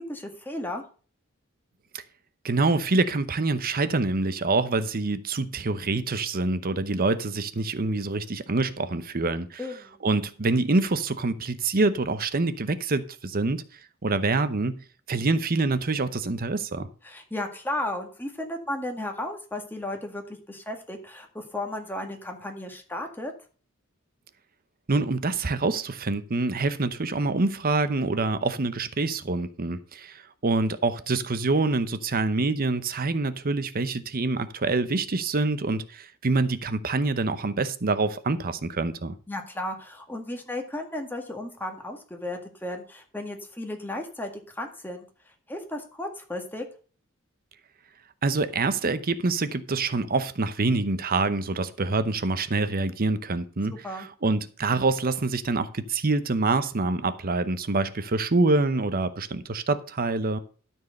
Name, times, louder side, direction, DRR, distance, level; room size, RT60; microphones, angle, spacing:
voice 1, 0.1-0.8 9.6-10.0 17.0-20.2 20.5-23.3 39.3-45.1 45.5-46.6 53.8-54.1, left 1 dB, 10° left, 1.8 m, -34 dB
voice 2, 2.4-9.6 10.0-13.6 14.0-14.8 15.1-16.9 24.9-39.1 48.2-60.4, right 3 dB, 45° right, 0.8 m, -26 dB
13.0 x 4.6 x 6.5 m
head